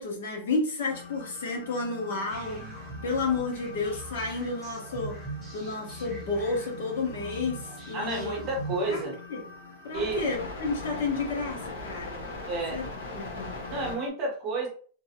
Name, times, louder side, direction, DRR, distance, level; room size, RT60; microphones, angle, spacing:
voice 1, 0.0-2.6 3.0-5.2 5.5-8.4 8.9-9.4 9.8-12.2 12.7-13.6, left 3 dB, 70° left, 0 dB, 1.1 m, -31 dB
sound 1, 0.9-14.1, left 3 dB, 85° left, 1.3 m, -42 dB
sound 2, 2.3-9.0, right 3 dB, 5° left, 0.8 m, -42 dB
voice 2, 7.9-9.2 9.9-10.3 12.5-12.8 13.7-14.7, right 2 dB, 25° right, -1 dB, 0.9 m, -31 dB
3.2 x 2.0 x 2.8 m, 0.43 s
supercardioid pair, 175°, 0 cm